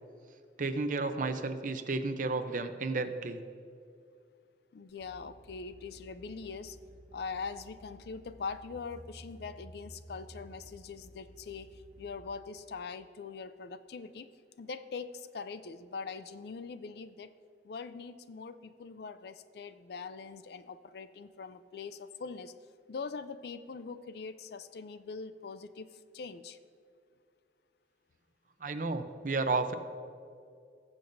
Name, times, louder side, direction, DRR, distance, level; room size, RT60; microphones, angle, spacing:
voice 1, 0.6-3.4 28.6-29.7, right 3 dB, 45° right, 8 dB, 0.6 m, -32 dB
voice 2, 4.7-6.8 7.1-14.3 14.6-17.3 17.6-22.5 22.9-25.9 26.1-26.6, left 5 dB, 60° left, 13 dB, 0.4 m, -42 dB
sound 1, 4.9-12.3, equal, 10° right, 1.3 m, -53 dB
19.5 x 6.8 x 2.6 m, 2.4 s
head